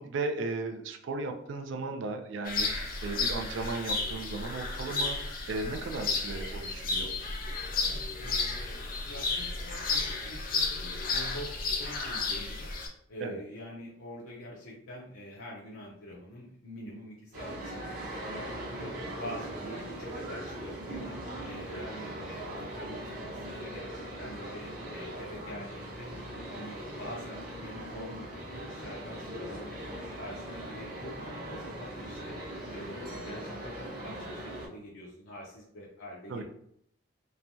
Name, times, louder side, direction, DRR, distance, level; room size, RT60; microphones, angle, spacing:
voice 1, 0.0-7.1 13.2-13.4 36.3-36.4, right 3 dB, 70° right, 5 dB, 0.4 m, -36 dB
sound 1, 2.4-12.9, left 3 dB, 45° left, 0.4 m, -33 dB
voice 2, 7.8-12.7 13.1-18.9 19.2-21.1 21.4-26.1 26.5-32.4 32.7-36.4, equal, 85° left, -5 dB, 0.6 m, -45 dB
sound 2, 17.3-34.7, right 1 dB, 45° right, 0.8 m, -40 dB
3.1 x 2.2 x 2.6 m, 0.72 s
head